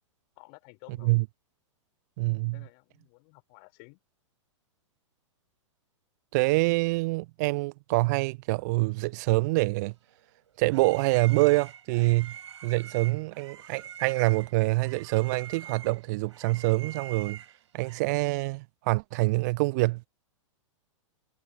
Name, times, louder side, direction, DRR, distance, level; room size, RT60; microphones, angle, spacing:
voice 1, 0.4-1.2 2.5-4.0, left 40 dB or more, 40° left, 3.5 m, -53 dB
voice 2, 2.2-2.6 6.3-9.9 10.6-12.3 12.6-17.4 17.7-20.1, right 24 dB, 35° right, 0.3 m, -26 dB
sound 1, 10.1-18.0, right 9 dB, 65° right, 3.6 m, -45 dB
figure-of-eight pair, 100°, 16 cm